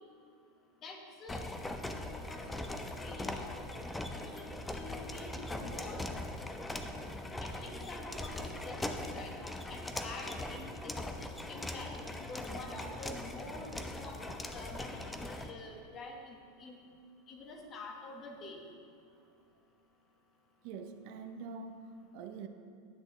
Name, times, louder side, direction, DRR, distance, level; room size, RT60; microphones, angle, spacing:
voice 1, 0.8-1.5 2.3-2.7 3.0-3.5 4.1-6.1 7.4-9.3 9.7-14.2 14.5-16.8 17.3-18.6, left 2 dB, 35° left, 2 dB, 1.2 m, -47 dB
sound 1, 1.3-15.5, left 1 dB, 10° left, 0.5 m, -41 dB
voice 2, 20.6-22.5, right 5 dB, 60° right, 8 dB, 0.5 m, -45 dB
10.0 x 6.1 x 3.1 m, 2.4 s
hypercardioid pair, 100°, 0 cm